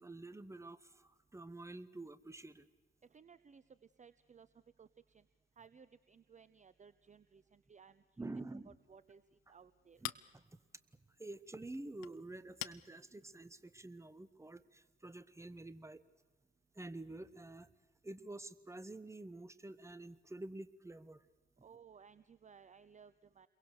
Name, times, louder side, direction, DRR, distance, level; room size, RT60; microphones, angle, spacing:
voice 1, 0.0-2.7 8.2-8.8 10.0-10.6 11.2-16.0 16.7-17.7 18.0-21.2, right 2 dB, 10° right, 14 dB, 1.3 m, -49 dB
voice 2, 3.0-5.3 5.6-10.1 21.6-23.5, right 6 dB, 25° right, 15 dB, 0.8 m, -60 dB
Chink clink, 8.8-14.3, left 19 dB, 65° left, 0.8 m, -51 dB
29.0 x 22.5 x 6.6 m, 1.2 s
figure-of-eight pair, 50°, 29 cm